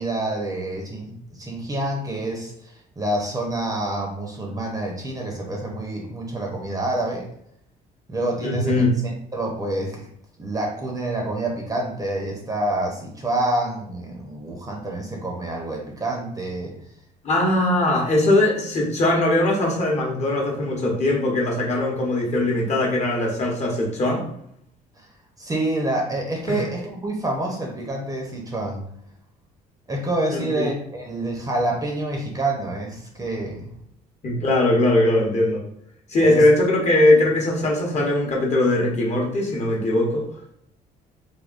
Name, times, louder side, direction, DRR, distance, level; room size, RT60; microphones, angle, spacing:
voice 1, 0.0-7.3 8.1-8.9 9.3-10.1 10.4-16.7 25.0-25.1 25.4-28.8 29.9-33.7 36.2-36.4, right 1 dB, 20° right, 1 dB, 0.7 m, -27 dB
voice 2, 8.4-8.9 17.2-24.2 26.5-26.6 30.3-30.7 34.2-35.6 36.1-40.3, left 1 dB, 40° left, -1 dB, 0.9 m, -20 dB
3.5 x 2.2 x 2.4 m, 0.72 s
cardioid pair, 110°, 17 cm